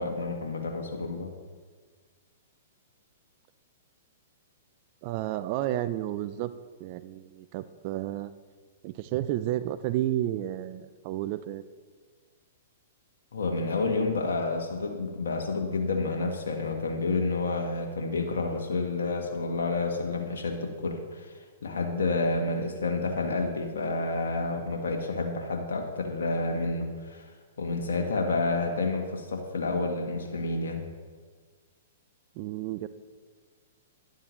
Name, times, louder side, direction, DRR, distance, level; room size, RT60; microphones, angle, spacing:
voice 1, 0.0-1.3 13.3-27.3 27.6-30.8, left 3 dB, 75° left, 2 dB, 1.3 m, -29 dB
voice 2, 5.0-6.5 6.8-8.3 8.8-11.6 32.4-32.9, right 13 dB, 45° right, 13 dB, 0.5 m, -31 dB
11.5 x 11.0 x 3.1 m, 1.5 s
hypercardioid pair, 120°, 0 cm